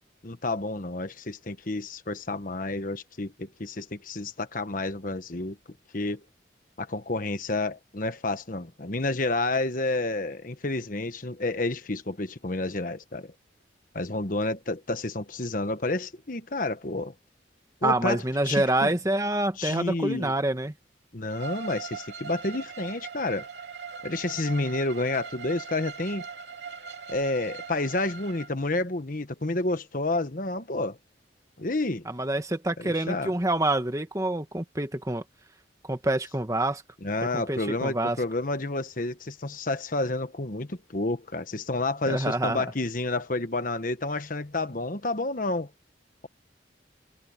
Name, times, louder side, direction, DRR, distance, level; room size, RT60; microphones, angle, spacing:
voice 1, 0.2-5.6 5.9-6.2 6.8-13.3 13.9-17.1 17.8-18.9 19.6-20.3 21.1-23.4 24.0-26.3 27.1-31.0 31.6-32.0 32.8-33.3 37.0-45.7, left 2 dB, 50° left, 1.3 m, -30 dB
voice 2, 17.8-20.7 32.0-35.2 35.8-36.8 37.3-38.2 42.1-42.7, right 1 dB, 20° right, 1.5 m, -27 dB
Bowed string instrument, 21.3-28.5, right 5 dB, 75° right, 2.7 m, -40 dB
head